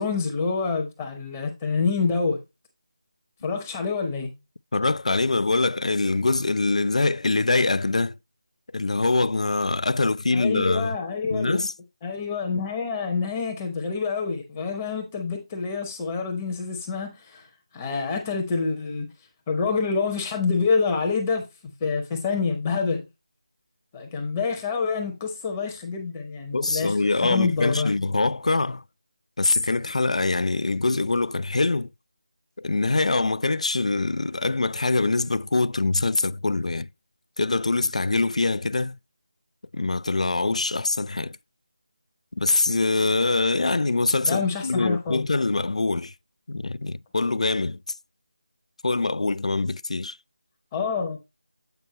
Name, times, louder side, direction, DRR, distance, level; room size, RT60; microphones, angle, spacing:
voice 1, 0.0-2.4 3.4-4.3 10.3-11.6 12.0-17.5 17.7-19.1 19.5-21.5 21.8-23.0 23.9-27.0 27.2-27.9 44.2-45.3 50.7-51.2, left 4 dB, 15° left, 0.7 m, -27 dB
voice 2, 4.7-8.2 8.7-11.0 11.3-11.7 26.5-28.8 29.4-31.9 32.6-36.9 37.4-39.0 39.7-41.4 42.3-46.1 46.5-47.8 48.8-50.2, left 3 dB, 75° left, 0.3 m, -24 dB
8.0 x 4.4 x 3.0 m
figure-of-eight pair, 170°, 4 cm